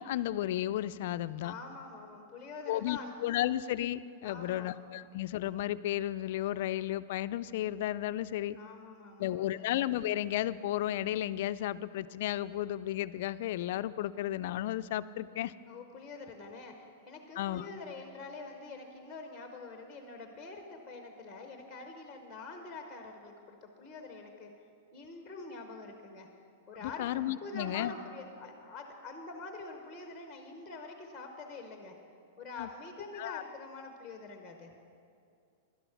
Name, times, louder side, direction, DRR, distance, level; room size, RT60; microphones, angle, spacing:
voice 1, 0.0-1.5 2.7-8.6 9.2-15.5 17.4-17.7 26.8-27.9 32.6-32.7 33.2-33.4, left 13 dB, 50° left, 14 dB, 0.3 m, -33 dB
voice 2, 1.4-3.4 4.2-4.7 8.5-9.6 15.7-24.5 24.9-26.3 26.7-27.1 27.4-32.0 32.4-34.7, left 3 dB, 5° left, 4 dB, 0.9 m, -45 dB
11.5 x 11.0 x 5.9 m, 2.3 s
supercardioid pair, 170°, 0 cm